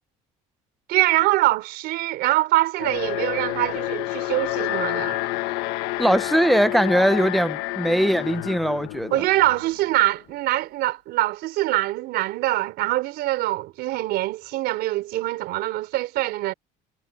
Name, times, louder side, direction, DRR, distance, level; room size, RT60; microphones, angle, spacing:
voice 1, 0.9-5.2 9.1-16.5, right 17 dB, 70° right, 3.7 m, -24 dB
Alarm, 2.8-9.9, left 19 dB, 85° left, 1.5 m, -29 dB
voice 2, 6.0-9.2, equal, ahead, 0.7 m, -21 dB
cardioid pair, 130°, 17 cm